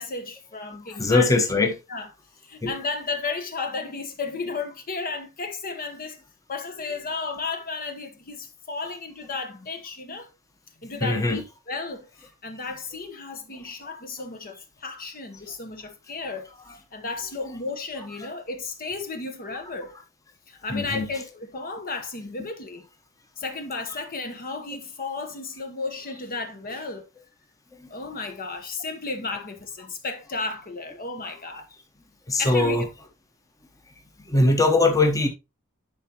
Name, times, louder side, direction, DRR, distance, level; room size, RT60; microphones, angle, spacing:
voice 1, 0.0-1.3 1.9-2.1 2.4-6.2 6.5-10.3 10.8-16.5 16.9-20.0 20.5-22.9 23.4-27.1 27.9-31.7 32.4-32.8, left 3 dB, 40° left, 1.0 m, -33 dB
voice 2, 1.0-1.7 2.6-2.7 11.0-11.4 20.7-21.1 27.8-27.9 32.3-32.8 34.3-35.3, left 2 dB, 15° left, 1.1 m, -21 dB
11.0 x 4.7 x 2.9 m
head